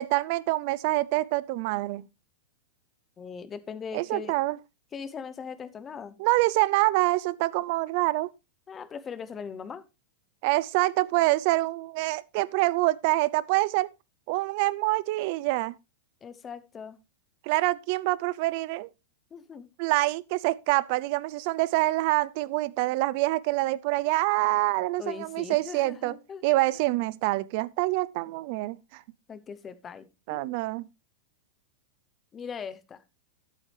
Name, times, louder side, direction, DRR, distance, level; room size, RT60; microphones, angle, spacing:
voice 1, 0.0-2.0 3.9-4.6 6.2-8.3 10.4-13.9 14.3-15.7 17.4-18.9 19.8-26.2 26.4-29.0 30.3-30.9, right 19 dB, 35° right, 0.5 m, -26 dB
voice 2, 3.2-4.4 4.9-6.2 8.7-9.8 16.2-17.0 19.3-19.7 25.0-26.4 29.3-30.5 32.3-33.0, left 6 dB, 15° left, 0.7 m, -40 dB
14.0 x 8.5 x 3.3 m
supercardioid pair, 175°, 0 cm